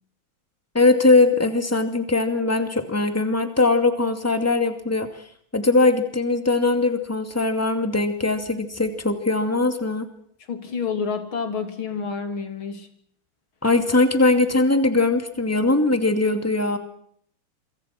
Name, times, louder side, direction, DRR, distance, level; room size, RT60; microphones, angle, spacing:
voice 1, 0.7-5.1 5.5-10.1 13.6-16.8, left 3 dB, 5° left, 8 dB, 2.4 m, -20 dB
voice 2, 10.5-12.9, left 5 dB, 70° left, 7 dB, 3.8 m, -29 dB
27.0 x 25.5 x 6.0 m, 0.65 s
omnidirectional pair, 2.3 m